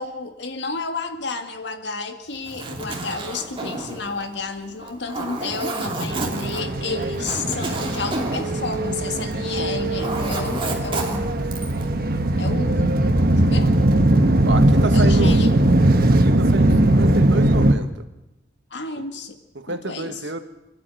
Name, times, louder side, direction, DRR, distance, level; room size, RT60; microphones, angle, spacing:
voice 1, 0.0-11.3 12.4-13.0 13.4-13.7 14.9-15.5 18.7-19.4 19.7-20.2, left 3 dB, 70° left, 6 dB, 2.0 m, -31 dB
Zipper (clothing), 2.3-9.5 9.7-11.9, right 2 dB, 30° right, 2.7 m, -31 dB
sound 1, 6.1-17.7, right 1 dB, 55° right, 1.3 m, -19 dB
voice 2, 13.6-14.0 14.5-15.4 16.1-17.9 19.0-19.1 19.5-20.4, right 2 dB, 80° right, 7 dB, 1.8 m, -30 dB
25.5 x 12.0 x 9.2 m, 0.96 s
head